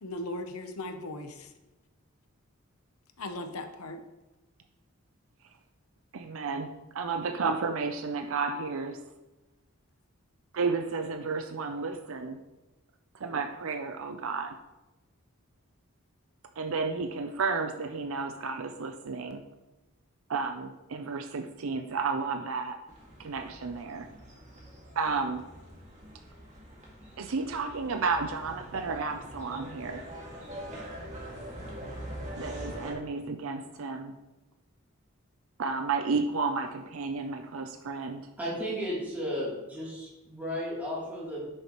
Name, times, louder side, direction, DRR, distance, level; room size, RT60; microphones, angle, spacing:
voice 1, 0.0-1.5 3.2-4.0, left 1 dB, 90° left, 7 dB, 0.9 m, -38 dB
voice 2, 6.1-9.0 10.5-12.4 13.1-14.6 16.6-19.4 20.3-22.8 23.2-24.1 25.0-25.4 27.2-30.0 32.4-34.2 35.6-38.3, right 4 dB, 70° right, 6 dB, 0.5 m, -32 dB
sound 1, 22.9-32.9, equal, 35° right, 2.0 m, -44 dB
voice 3, 38.4-41.5, equal, 10° right, -8 dB, 3.0 m, -34 dB
11.0 x 6.5 x 3.1 m, 1.0 s
head